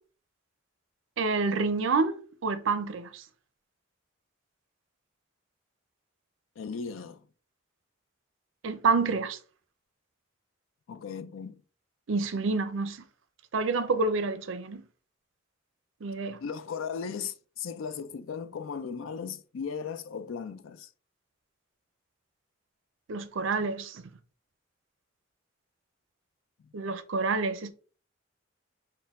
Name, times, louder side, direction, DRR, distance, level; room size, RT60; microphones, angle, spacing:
voice 1, 1.2-3.2 8.6-9.4 12.1-13.0 13.5-14.8 16.0-16.4 23.1-24.0 26.7-27.7, right 4 dB, 80° right, 0.5 m, -28 dB
voice 2, 6.6-7.2 10.9-11.6 16.4-20.9, left 6 dB, 85° left, 0.4 m, -37 dB
4.3 x 2.1 x 3.5 m
head